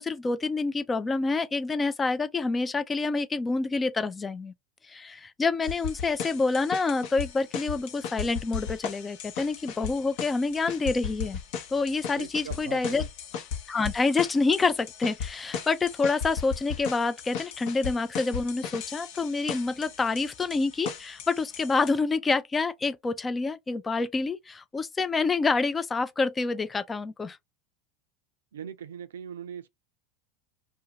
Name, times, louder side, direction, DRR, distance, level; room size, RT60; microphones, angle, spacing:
voice 1, 0.0-4.5 4.9-11.4 11.7-13.0 13.7-27.4, left 3 dB, 20° left, 0.4 m, -27 dB
sound 1, 5.6-21.9, left 7 dB, 60° left, 0.9 m, -37 dB
voice 2, 12.2-13.1 28.5-29.7, right 8 dB, 85° right, 0.4 m, -40 dB
2.5 x 2.2 x 2.8 m
hypercardioid pair, 90°, 0 cm